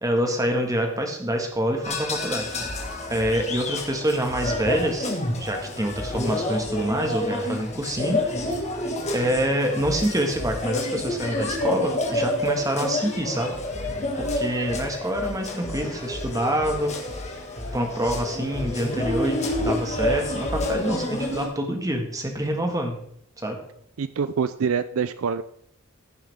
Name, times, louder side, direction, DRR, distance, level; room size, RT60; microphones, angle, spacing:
voice 1, 0.0-2.5 3.1-8.6 9.1-13.5 14.2-17.0 17.7-23.0 23.4-23.6, right 1 dB, 15° right, 3 dB, 1.6 m, -26 dB
sound 1, 1.8-21.5, left 1 dB, 30° left, 1.8 m, -29 dB
voice 2, 24.0-25.4, right 6 dB, 65° right, 13 dB, 0.4 m, -25 dB
15.5 x 7.1 x 3.5 m, 0.69 s
head